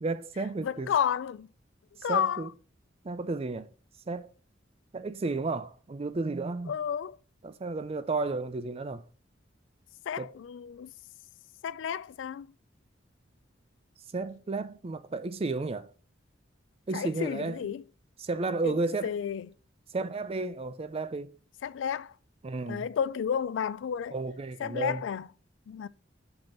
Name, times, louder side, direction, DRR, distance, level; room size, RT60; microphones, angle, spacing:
voice 1, 0.0-0.9 2.1-2.5 3.0-3.7 4.1-4.3 4.9-6.8 7.4-9.0 10.2-10.3 14.1-15.9 16.9-17.6 18.2-19.2 19.9-21.4 22.4-22.9 24.1-25.0, right 3 dB, 30° right, 0.5 m, -32 dB
voice 2, 0.6-1.5 2.0-2.5 6.7-7.2 10.1-10.9 11.6-12.5 16.9-17.8 18.6-18.8 19.0-19.5 21.6-22.1 22.7-24.1 24.6-25.3 25.7-25.9, left 8 dB, 75° left, 0.3 m, -31 dB
5.7 x 5.3 x 4.3 m
head